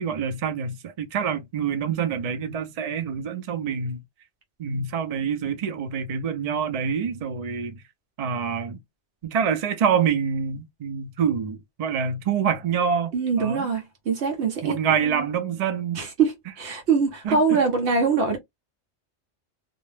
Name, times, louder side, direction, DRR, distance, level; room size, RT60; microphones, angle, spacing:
voice 1, 0.0-4.0 4.6-7.8 8.2-8.8 9.2-13.7 14.6-16.1 17.2-17.4, right 7 dB, 55° right, 0.4 m, -26 dB
voice 2, 13.1-14.8 15.0-15.3 16.0-18.4, right 5 dB, 70° right, 0.9 m, -23 dB
2.3 x 2.1 x 3.1 m
omnidirectional pair, 1.2 m